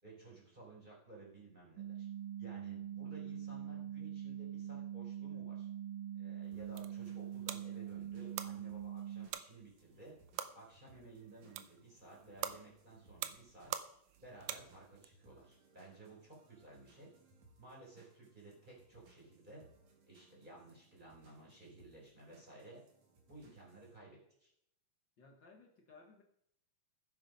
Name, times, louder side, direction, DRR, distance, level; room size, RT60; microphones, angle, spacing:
voice 1, 0.0-2.1 2.4-5.7 6.1-10.2 10.5-13.7 14.1-17.1 17.6-19.6 20.1-22.8 23.3-24.5, right 2 dB, 10° right, -4 dB, 4.6 m, -56 dB
sound 1, 1.8-9.3, right 10 dB, 75° right, 2.2 m, -44 dB
sound 2, 6.4-15.1, right 11 dB, 90° right, 1.7 m, -47 dB
sound 3, 6.5-24.0, right 3 dB, 50° right, 2.9 m, -67 dB
voice 2, 25.2-26.2, left 3 dB, 80° left, 1 dB, 1.0 m, -61 dB
15.5 x 8.2 x 5.4 m, 0.74 s
omnidirectional pair, 4.3 m